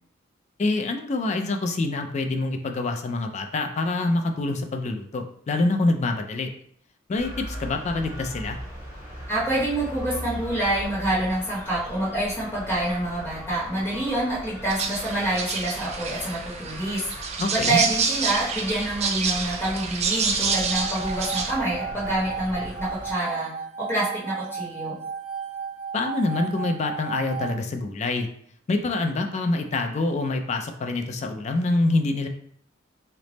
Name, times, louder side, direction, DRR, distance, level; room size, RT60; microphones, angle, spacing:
voice 1, 0.6-6.5 7.1-8.6 17.4-17.8 25.9-28.3 28.7-32.3, left 2 dB, 35° left, 5 dB, 0.3 m, -26 dB
sound 1, 7.2-23.1, equal, 15° right, 1.0 m, -39 dB
voice 2, 9.3-17.1 17.5-23.5 23.8-25.0, right 1 dB, 15° left, -7 dB, 0.9 m, -27 dB
sound 2, 14.7-21.5, right 5 dB, 35° right, 0.4 m, -28 dB
sound 3, 20.4-27.5, right 6 dB, 90° right, 0.9 m, -34 dB
3.3 x 2.0 x 3.9 m, 0.65 s
head